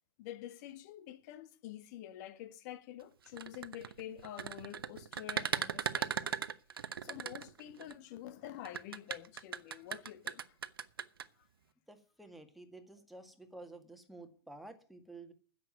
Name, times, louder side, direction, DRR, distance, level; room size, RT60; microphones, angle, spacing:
voice 1, 0.2-6.5 6.7-10.5 11.4-11.5, left 12 dB, 50° left, 1.5 m, -48 dB
sound 1, 3.3-7.9 8.6-11.2, right 8 dB, 75° right, 0.8 m, -37 dB
voice 2, 11.9-15.3, right 2 dB, ahead, 1.8 m, -51 dB
10.0 x 7.4 x 9.1 m
hypercardioid pair, 110°, 12 cm